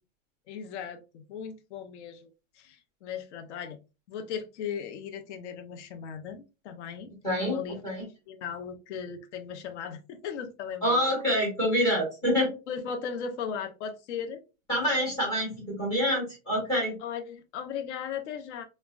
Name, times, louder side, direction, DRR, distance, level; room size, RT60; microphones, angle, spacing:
voice 1, 0.5-3.8 4.1-7.1 7.4-11.0 12.7-14.4 16.0-16.1 17.0-18.6, left 7 dB, 60° left, 6 dB, 0.5 m, -37 dB
voice 2, 7.2-8.0 10.8-12.5 14.7-17.0, equal, 10° left, -2 dB, 0.5 m, -27 dB
3.3 x 2.0 x 2.2 m, 0.29 s
supercardioid pair, 175°, 39 cm